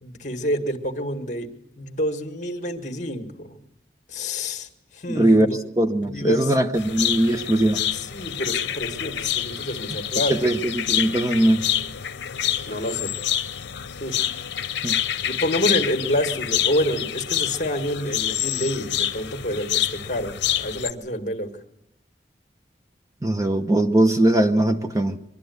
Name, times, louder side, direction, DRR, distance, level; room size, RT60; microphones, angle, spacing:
voice 1, 0.0-1.5 1.8-3.6 4.1-4.7 4.9-5.6 6.0-6.6 7.9-10.5 12.6-13.2 14.0-14.2 14.9-21.5, equal, 45° left, 5 dB, 1.8 m, -28 dB
voice 2, 5.1-7.8 10.3-11.7 14.8-15.0 23.2-25.2, right 1 dB, 20° right, 6 dB, 0.9 m, -20 dB
sound 1, 6.7-20.9, left 11 dB, 90° left, 0.7 m, -27 dB
23.5 x 12.0 x 9.5 m, 0.89 s
head